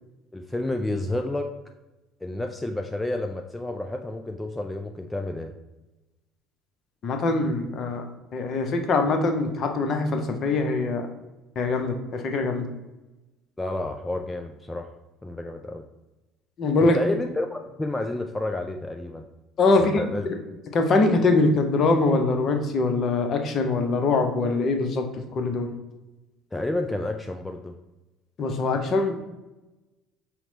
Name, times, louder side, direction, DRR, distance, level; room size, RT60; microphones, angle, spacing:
voice 1, 0.3-1.5 2.2-5.5 13.6-14.9 15.2-15.8 16.8-19.3 19.8-20.3 26.5-27.7, left 2 dB, 10° left, 4 dB, 0.3 m, -30 dB
voice 2, 7.0-8.0 8.3-11.1 11.6-12.7 16.6-17.0 19.6-20.0 20.7-25.1 25.3-25.7 28.4-29.2, left 3 dB, 40° left, 5 dB, 0.7 m, -23 dB
5.7 x 2.1 x 3.9 m, 1.0 s
figure-of-eight pair, 60°, 0 cm